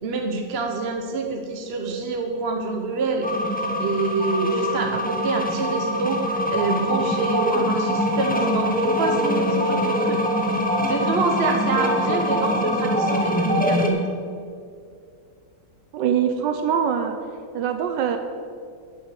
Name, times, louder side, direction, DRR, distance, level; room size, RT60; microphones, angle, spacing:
voice 1, 0.0-3.3 3.8-14.0, right 3 dB, 45° right, 2 dB, 0.9 m, -26 dB
sound 1, 3.2-13.9, equal, 5° left, 1.1 m, -23 dB
voice 2, 15.9-17.2 17.5-18.2, right 8 dB, 80° right, 6 dB, 1.4 m, -23 dB
10.0 x 7.1 x 8.2 m, 2.3 s
omnidirectional pair, 1.9 m